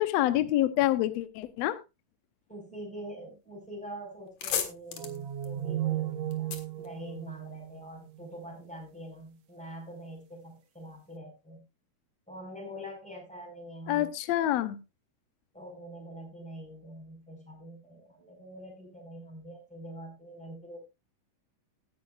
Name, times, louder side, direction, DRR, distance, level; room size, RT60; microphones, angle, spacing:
voice 1, 0.0-1.8 13.9-14.8, left 14 dB, 75° left, 12 dB, 1.6 m, -27 dB
voice 2, 2.5-6.5 6.8-11.6 12.3-14.1 15.5-20.8, equal, ahead, 2 dB, 4.3 m, -44 dB
sound 1, 3.7-3.8 4.1-7.7, left 8 dB, 60° left, 2.3 m, -37 dB
sound 2, 5.0-8.4, right 12 dB, 65° right, 1.9 m, -35 dB
17.0 x 10.0 x 2.4 m, 0.25 s
omnidirectional pair, 3.7 m